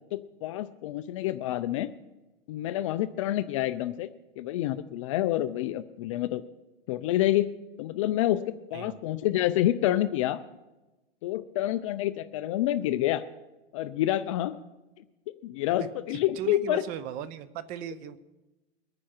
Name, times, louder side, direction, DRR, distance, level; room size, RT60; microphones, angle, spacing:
voice 1, 0.1-1.9 2.5-4.1 4.4-6.4 6.9-7.5 7.8-8.4 8.7-10.4 11.2-13.3 13.7-14.6 15.4-16.8, left 14 dB, 30° left, 13 dB, 0.4 m, -28 dB
voice 2, 16.4-18.2, right 9 dB, 25° right, 15 dB, 0.7 m, -37 dB
22.5 x 9.7 x 4.4 m, 1.1 s
supercardioid pair, 155°, 32 cm